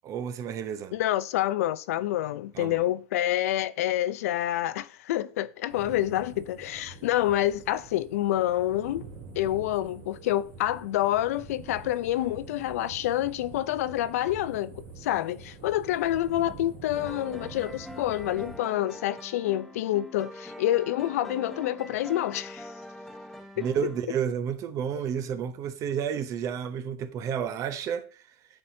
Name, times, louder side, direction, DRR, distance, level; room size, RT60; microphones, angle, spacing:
voice 1, 0.0-1.0 2.5-2.8 23.6-28.2, right 8 dB, 40° right, 0.7 m, -31 dB
voice 2, 0.9-9.1 9.4-14.7 15.0-22.7 23.6-23.7, left 13 dB, 80° left, 0.4 m, -27 dB
sound 1, 5.7-18.6, right 5 dB, 70° right, 2.1 m, -46 dB
sound 2, 16.9-24.0, left 1 dB, 5° left, 0.7 m, -43 dB
8.6 x 4.2 x 2.7 m
hypercardioid pair, 110°, 8 cm